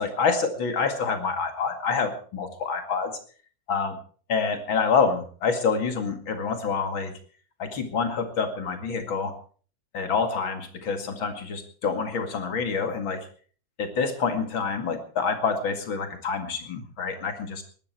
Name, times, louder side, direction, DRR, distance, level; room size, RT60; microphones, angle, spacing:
voice 1, 0.0-3.1 3.7-4.0 4.3-7.1 7.6-9.3 9.9-13.3 13.8-17.6, left 5 dB, 85° left, 7 dB, 2.9 m, -27 dB
19.5 x 12.5 x 4.5 m, 0.42 s
omnidirectional pair, 2.1 m